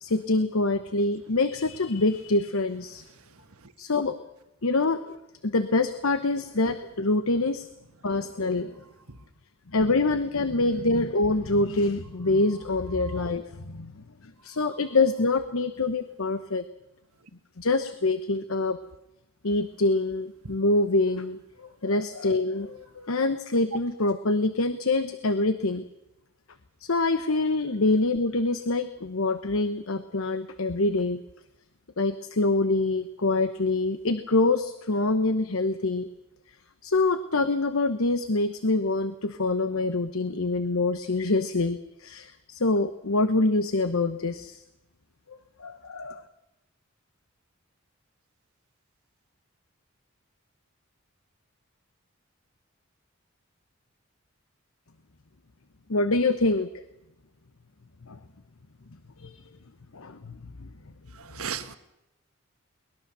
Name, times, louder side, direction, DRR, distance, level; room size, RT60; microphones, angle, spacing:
voice 1, 0.0-3.0 3.8-4.2 4.6-5.1 5.4-7.7 8.0-8.7 9.7-16.6 17.6-18.8 19.4-25.8 26.8-31.2 32.0-36.1 36.8-44.6 45.3-46.3 55.9-56.7 58.1-58.2 59.2-59.4 59.9-60.7, left 2 dB, 75° left, 11 dB, 1.0 m, -25 dB
voice 2, 61.2-61.8, right 8 dB, 85° right, 10 dB, 1.4 m, -36 dB
22.5 x 20.5 x 6.8 m, 0.89 s
head